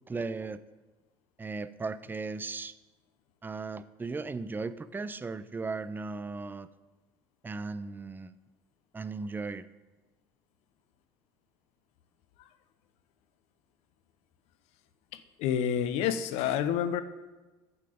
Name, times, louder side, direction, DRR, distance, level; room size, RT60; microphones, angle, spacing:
voice 1, 0.1-0.6 1.4-2.7 3.4-6.7 7.4-8.3 8.9-9.7, right 3 dB, 15° right, 14 dB, 0.5 m, -36 dB
voice 2, 15.1-17.0, left 9 dB, 65° left, 12 dB, 0.8 m, -29 dB
11.0 x 7.7 x 5.0 m, 1.2 s
hypercardioid pair, 65°, 12 cm